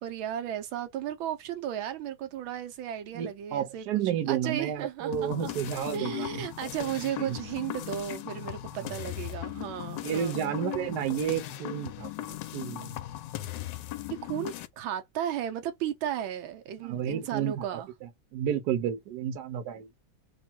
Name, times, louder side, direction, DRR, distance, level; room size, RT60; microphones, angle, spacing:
voice 1, 0.0-3.9 4.3-5.6 5.9-10.4 14.2-17.9, right 10 dB, 85° right, 1.5 m, -35 dB
voice 2, 3.1-6.3 7.2-7.4 10.0-13.0 16.8-17.8 18.3-19.9, right 9 dB, 65° right, 1.2 m, -31 dB
sound 1, 5.1-14.7, left 15 dB, 75° left, 1.1 m, -38 dB
3.5 x 2.3 x 4.3 m
omnidirectional pair, 2.1 m